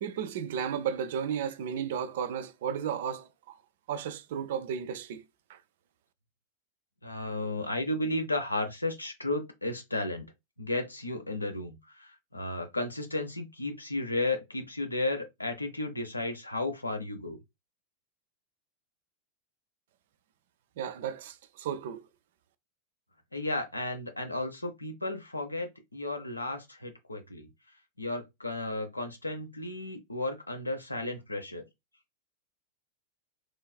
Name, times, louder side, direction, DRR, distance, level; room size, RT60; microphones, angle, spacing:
voice 1, 0.0-3.6 3.9-5.2 5.5-5.6 20.8-22.1, right 8 dB, 55° right, 0.3 m, -34 dB
voice 2, 7.0-10.3 10.6-17.4 23.3-27.5 28.0-31.7, left 2 dB, 85° left, 0.6 m, -34 dB
3.2 x 2.3 x 2.2 m
figure-of-eight pair, 90°, 0 cm